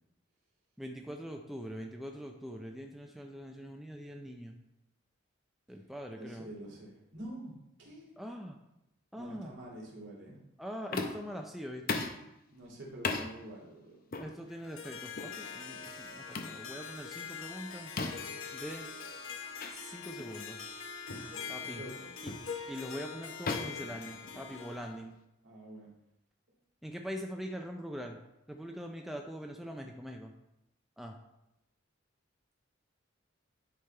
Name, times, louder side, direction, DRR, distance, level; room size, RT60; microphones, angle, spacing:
voice 1, 0.8-4.6 5.7-6.5 8.2-8.6 9.1-9.5 10.6-12.0 14.2-17.9 18.5-18.9 19.7-20.6 21.5-21.8 22.2-22.3 22.7-25.2 26.8-28.2 28.5-30.3 31.0-31.1, equal, ahead, 2 dB, 0.4 m, -43 dB
voice 2, 6.1-8.1 9.1-10.4 12.5-14.0 21.1-22.1 25.4-25.9, right 1 dB, 65° right, -4 dB, 2.6 m, -47 dB
sound 1, 10.9-11.3 11.9-12.2 13.0-13.3 14.1-14.3 15.1-15.4 16.3-16.6 18.0-18.4 19.6-19.7 20.2-20.3 21.1-21.3 22.3-22.5 23.5-24.7, left 3 dB, 45° left, 0.7 m, -36 dB
Harp, 14.5-25.0, left 6 dB, 90° left, 0.9 m, -43 dB
10.0 x 3.4 x 4.4 m, 0.87 s
head